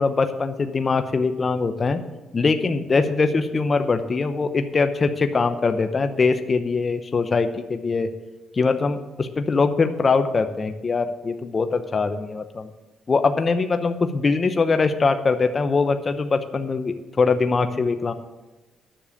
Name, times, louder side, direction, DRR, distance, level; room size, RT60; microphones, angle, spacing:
voice 1, 0.0-2.0 2.3-8.1 8.5-12.7 13.1-18.1, left 4 dB, 35° left, 8 dB, 0.8 m, -22 dB
10.0 x 6.9 x 6.9 m, 1.1 s
cardioid pair, 80°, 0 cm